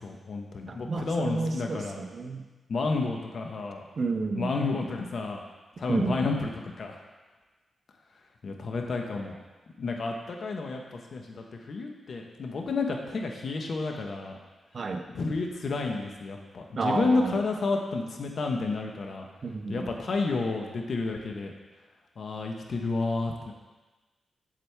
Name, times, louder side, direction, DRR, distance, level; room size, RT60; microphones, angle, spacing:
voice 1, 0.0-2.0 2.7-3.8 4.4-5.4 5.8-7.0 8.4-9.4 9.8-14.4 15.1-19.3 19.7-21.5 22.2-23.5, left 3 dB, 60° left, 2 dB, 1.1 m, -31 dB
voice 2, 0.7-2.4 4.0-4.5 5.9-6.2 14.7-15.1 16.7-17.4 19.4-19.9, right 3 dB, 50° right, 5 dB, 0.7 m, -30 dB
8.1 x 7.5 x 3.5 m, 1.2 s
cardioid pair, 80°, 0 cm